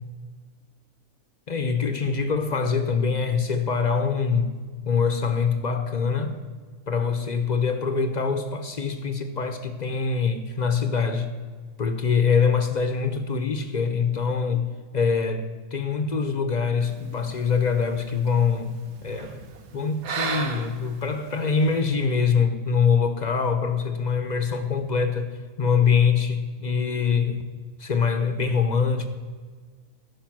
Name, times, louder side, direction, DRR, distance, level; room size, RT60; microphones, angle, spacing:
voice 1, 1.5-4.5 4.8-6.4 6.9-11.3 11.8-14.7 14.9-15.4 15.7-18.8 19.0-27.4 27.8-29.1, left 5 dB, 45° left, 8 dB, 0.6 m, -24 dB
sound 1, 16.8-21.8, right 6 dB, 80° right, 1.3 m, -37 dB
13.5 x 5.4 x 6.0 m, 1.5 s
omnidirectional pair, 1.5 m